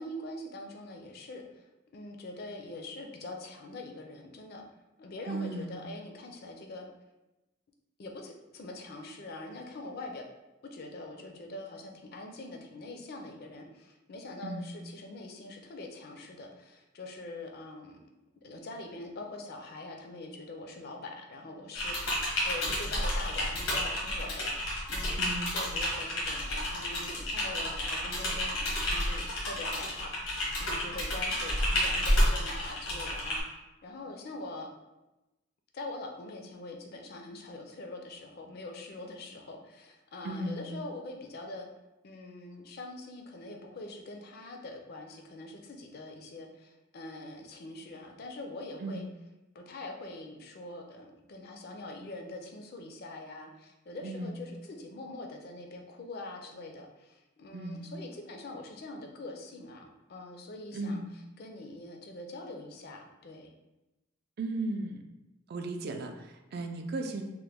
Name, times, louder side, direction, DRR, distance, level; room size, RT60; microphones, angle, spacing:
voice 1, 0.0-1.7 1.9-4.6 5.0-6.9 8.0-10.3 10.6-18.0 18.4-24.5 24.9-34.7 35.7-41.7 42.0-49.0 49.5-63.5, left 2 dB, 50° left, 3 dB, 0.4 m, -44 dB
voice 2, 5.3-5.8 14.4-14.7 25.2-25.6 40.2-40.7 48.8-49.0 54.0-54.4 57.5-57.9 60.7-61.1 64.4-65.0 65.5-67.2, right 2 dB, 50° right, 5 dB, 0.3 m, -36 dB
Typing, 21.7-33.4, left 1 dB, 85° left, 1.0 m, -31 dB
3.0 x 2.1 x 3.4 m, 1.0 s
head